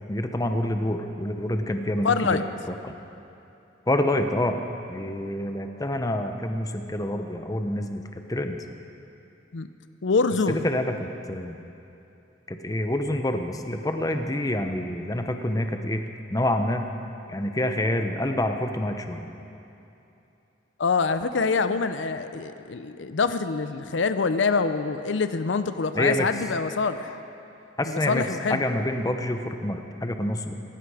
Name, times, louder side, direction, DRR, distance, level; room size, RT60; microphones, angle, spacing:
voice 1, 0.1-2.4 2.7-2.9 3.9-4.6 4.9-8.0 8.3-8.6 10.5-11.6 12.5-16.0 16.3-16.8 17.3-19.3 25.9-26.3 27.8-28.2 28.5-30.5, left 1 dB, 20° left, 6 dB, 0.8 m, -27 dB
voice 2, 2.0-2.4 9.5-9.7 10.0-10.7 20.8-27.2 27.8-28.6, left 4 dB, 85° left, 11 dB, 0.6 m, -25 dB
17.5 x 15.0 x 4.9 m, 2.8 s
head